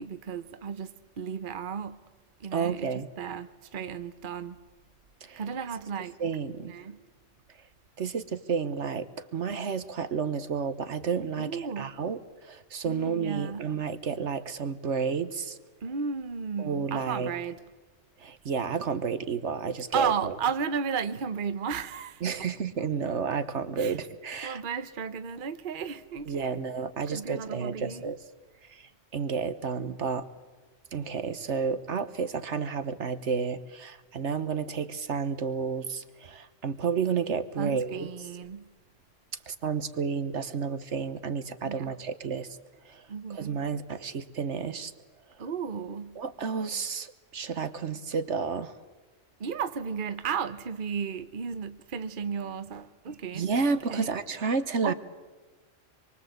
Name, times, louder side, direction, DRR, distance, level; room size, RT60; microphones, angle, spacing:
voice 1, 0.0-2.0 2.4-4.6 5.4-6.2 6.6-7.0 11.4-11.9 12.8-13.7 15.8-17.6 19.9-22.5 22.8-22.9 23.8-24.0 24.4-26.6 27.1-28.1 37.6-38.7 41.6-42.0 43.1-43.6 45.4-46.2 49.4-54.1 54.8-54.9, right 6 dB, 45° right, 1.0 m, -34 dB
voice 2, 2.5-3.1 5.2-5.4 6.2-6.7 8.0-15.6 16.6-17.3 18.2-20.3 22.2-24.6 26.3-28.2 28.6-30.2 30.9-38.1 39.5-42.5 42.8-44.9 46.2-48.7 53.3-54.9, right 5 dB, 65° right, 1.4 m, -31 dB
26.0 x 23.5 x 8.0 m
omnidirectional pair, 1.3 m